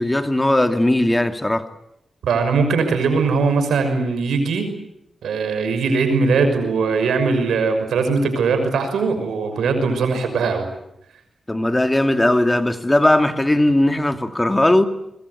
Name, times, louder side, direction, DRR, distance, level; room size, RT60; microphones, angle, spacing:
voice 1, 0.0-1.6 11.5-14.8, left 1 dB, 15° left, 2.4 m, -18 dB
voice 2, 2.2-4.7 5.2-10.7, right 4 dB, 90° right, 6.0 m, -20 dB
26.5 x 22.5 x 8.3 m
cardioid pair, 55°, 0 cm